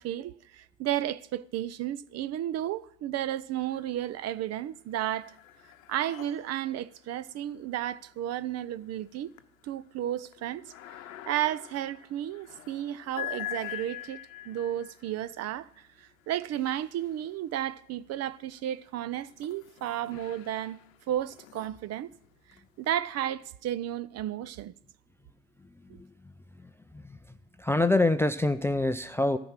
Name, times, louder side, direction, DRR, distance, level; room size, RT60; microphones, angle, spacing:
voice 1, 0.0-5.4 5.9-9.3 9.6-10.7 11.3-14.2 14.5-15.7 16.0-20.8 21.1-22.1 22.8-24.7, right 12 dB, 40° right, 0.6 m, -33 dB
sound 1, 3.6-4.2 4.6-17.8 18.4-22.9, left 13 dB, 90° left, 0.8 m, -46 dB
voice 2, 25.9-26.3 26.6-27.2 27.6-29.4, left 2 dB, 5° left, 0.4 m, -26 dB
13.5 x 6.0 x 8.9 m
hypercardioid pair, 85°, 39 cm